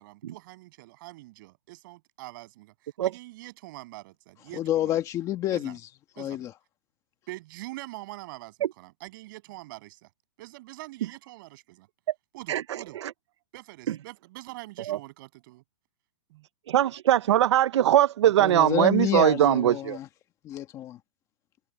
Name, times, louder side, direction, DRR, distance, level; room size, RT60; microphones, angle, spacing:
voice 1, 0.0-2.7 3.0-5.0 5.5-5.8 6.2-6.5 7.3-10.1 10.4-11.9 12.3-13.0 13.5-15.6 16.3-16.5, right 20 dB, 40° right, 7.8 m, -44 dB
voice 2, 4.5-5.8 6.2-6.5 18.4-20.1 20.4-21.0, left 12 dB, 20° left, 1.5 m, -28 dB
voice 3, 12.5-13.1 13.9-14.0 14.9-15.0 16.7-20.0, right 12 dB, 60° right, 0.9 m, -22 dB
hypercardioid pair, 160°, 16 cm